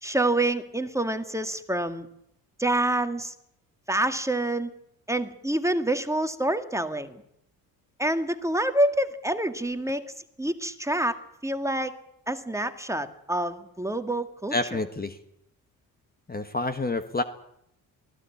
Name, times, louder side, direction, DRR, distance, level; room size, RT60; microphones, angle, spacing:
voice 1, 0.0-2.1 2.6-3.3 3.9-4.7 5.1-7.2 8.0-10.0 10.4-11.9 12.3-14.8, right 1 dB, 5° right, 8 dB, 2.0 m, -27 dB
voice 2, 14.5-15.2 16.3-17.2, left 2 dB, 20° left, 9 dB, 1.5 m, -28 dB
23.5 x 15.5 x 8.7 m, 0.78 s
hypercardioid pair, 60°, 43 cm